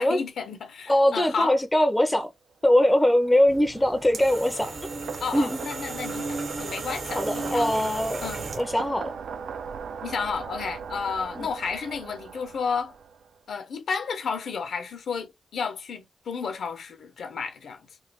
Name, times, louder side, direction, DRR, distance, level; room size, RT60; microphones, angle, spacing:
voice 1, 0.0-1.6 5.2-7.7 8.2-8.5 10.0-12.9 13.5-17.9, left 5 dB, 70° left, 0.7 m, -32 dB
voice 2, 0.9-2.3 2.6-4.7 5.3-5.6 7.1-8.3 8.5-9.1 11.4-11.5, left 1 dB, 10° left, 0.5 m, -22 dB
sound 1, 2.7-13.4, right 6 dB, 80° right, 0.3 m, -39 dB
sound 2, 3.5-8.9, right 3 dB, 55° right, 0.7 m, -36 dB
3.0 x 2.2 x 3.3 m
wide cardioid pair, 140°, 0 cm